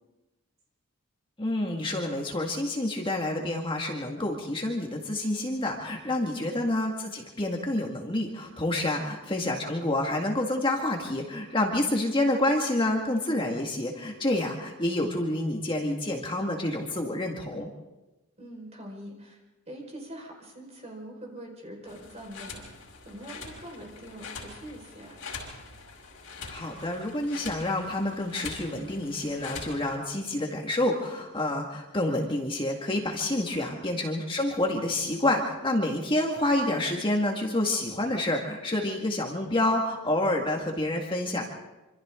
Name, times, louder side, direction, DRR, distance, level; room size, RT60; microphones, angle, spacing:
voice 1, 1.4-17.7 26.5-41.4, left 1 dB, 25° left, 1 dB, 1.9 m, -28 dB
voice 2, 6.2-6.5 8.9-9.1 18.4-19.4 19.7-22.6 23.0-25.3 28.6-28.9 33.4-33.9, right 1 dB, 30° right, 0 dB, 4.9 m, -44 dB
sound 1, 21.9-30.0, left 4 dB, 85° left, 5.4 m, -43 dB
26.5 x 26.0 x 3.8 m, 1.1 s
head